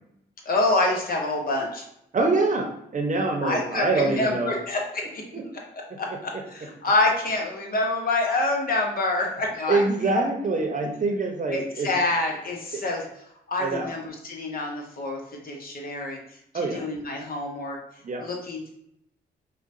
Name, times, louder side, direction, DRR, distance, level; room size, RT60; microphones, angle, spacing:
voice 1, 0.4-1.8 3.4-5.4 6.0-10.2 11.5-13.1 13.5-16.2 16.5-17.8 18.2-18.7, left 2 dB, 55° left, 1 dB, 1.0 m, -27 dB
voice 2, 2.1-2.7 2.9-4.5 5.3-5.4 9.7-11.9 12.7-12.8 13.6-13.9 16.5-16.8 18.0-18.2, right 3 dB, 45° right, 3 dB, 0.8 m, -24 dB
4.8 x 2.3 x 2.6 m, 0.76 s
supercardioid pair, 55°, 18 cm